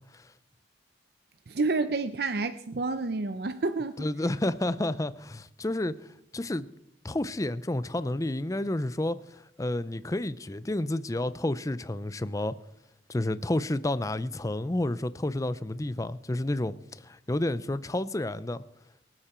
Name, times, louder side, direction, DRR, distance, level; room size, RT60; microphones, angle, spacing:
voice 1, 1.5-4.0, right 3 dB, 55° right, 0.6 m, -29 dB
voice 2, 4.0-5.9 6.3-6.7 7.0-9.2 9.6-12.6 13.1-18.6, left 1 dB, 20° left, 0.5 m, -30 dB
24.0 x 8.9 x 4.4 m
head